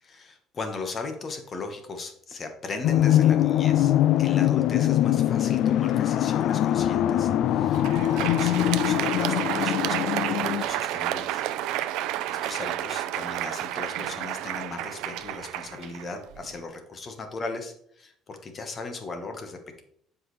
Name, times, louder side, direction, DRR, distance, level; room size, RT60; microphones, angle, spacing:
voice 1, 0.0-11.4 12.3-19.8, left 3 dB, 35° left, 5 dB, 1.3 m, -38 dB
sound 1, 2.8-10.6, left 12 dB, 65° left, 0.3 m, -22 dB
Crowd, 7.6-16.6, right 13 dB, 80° right, 0.5 m, -30 dB
11.0 x 4.8 x 3.2 m, 0.66 s
cardioid pair, 105°, 0 cm